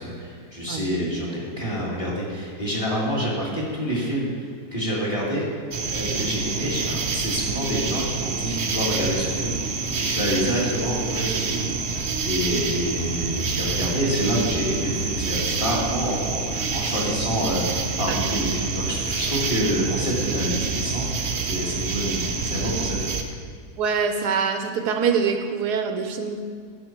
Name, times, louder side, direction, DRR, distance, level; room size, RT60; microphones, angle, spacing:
voice 1, 0.0-5.5 5.8-11.7 12.2-23.0, equal, 20° left, -5 dB, 2.0 m, -27 dB
sound 1, 5.7-23.2, right 4 dB, 55° right, 0.7 m, -27 dB
voice 2, 23.8-26.4, right 6 dB, 80° right, 6 dB, 1.2 m, -24 dB
10.5 x 6.2 x 4.4 m, 2.1 s
omnidirectional pair, 1.7 m